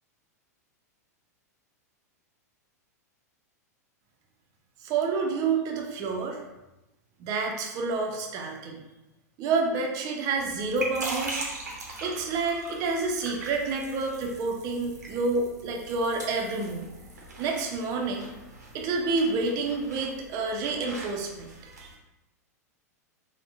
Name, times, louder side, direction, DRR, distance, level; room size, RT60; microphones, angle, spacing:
voice 1, 4.8-6.4 7.2-8.8 9.4-11.5 12.0-16.9 17.4-18.3 18.7-21.9, right 4 dB, 40° right, 2 dB, 0.5 m, -29 dB
sound 1, 10.4-21.9, right 2 dB, 85° right, 0.7 m, -41 dB
3.4 x 2.1 x 2.5 m, 0.99 s
hypercardioid pair, 105°, 9 cm